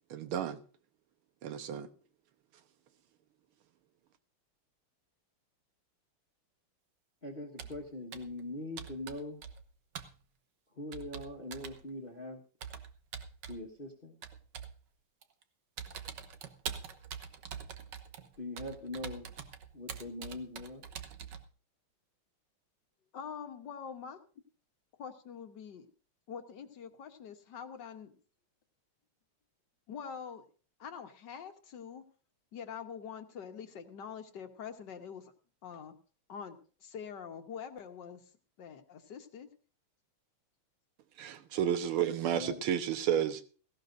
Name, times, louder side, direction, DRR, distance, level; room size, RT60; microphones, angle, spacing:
voice 1, 0.1-0.6 1.4-1.9 41.2-43.4, right 9 dB, 75° right, 1.8 m, -31 dB
voice 2, 7.2-9.4 10.7-12.4 13.5-14.1 18.4-19.3 19.7-20.8 42.3-42.6, left 2 dB, 30° left, 1.4 m, -42 dB
Computer keyboard, 7.6-7.8 8.1-8.4 8.8-9.7 10.0-10.2 10.9-11.8 12.6-13.6 14.2-14.8 15.2-15.4 15.8-21.5, right 7 dB, 60° right, 1.5 m, -44 dB
voice 3, 23.1-24.2 25.0-25.9 26.3-28.1 29.9-30.5 30.8-32.0 32.5-35.3 35.6-35.9 36.3-38.2 38.6-39.5, left 7 dB, 60° left, 1.6 m, -45 dB
17.5 x 16.0 x 2.6 m
omnidirectional pair, 2.4 m